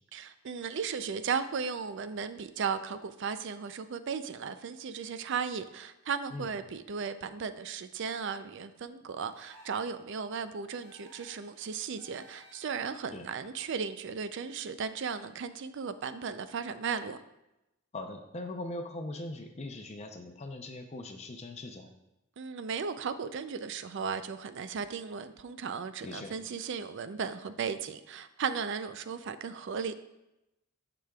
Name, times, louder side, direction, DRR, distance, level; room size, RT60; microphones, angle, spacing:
voice 1, 0.1-17.2 22.4-30.0, right 6 dB, 60° right, 12 dB, 0.4 m, -36 dB
sound 1, 9.3-10.0 10.8-11.5 12.0-12.8, left 1 dB, 15° right, 2.0 m, -57 dB
voice 2, 17.9-21.9 26.0-26.3, left 2 dB, 30° left, 5 dB, 0.6 m, -40 dB
13.5 x 5.0 x 2.3 m, 0.92 s
head